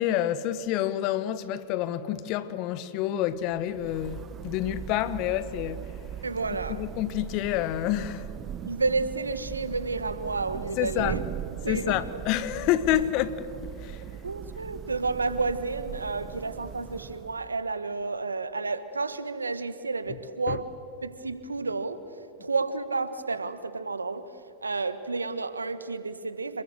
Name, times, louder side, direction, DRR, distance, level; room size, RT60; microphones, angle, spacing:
voice 1, 0.0-5.8 6.8-8.2 10.8-11.2 11.7-13.4 13.8-13.9 20.5-20.6, left 12 dB, 45° left, 1.2 m, -28 dB
Thunder / Rain, 3.4-17.7, right 9 dB, 30° right, 0.8 m, -40 dB
voice 2, 6.2-6.8 8.6-11.2 11.6-12.2 14.2-20.6 21.0-22.0 22.4-24.2 24.6-26.6, right 3 dB, 90° right, 1.3 m, -31 dB
27.5 x 21.0 x 7.7 m
hypercardioid pair, 95°, 0 cm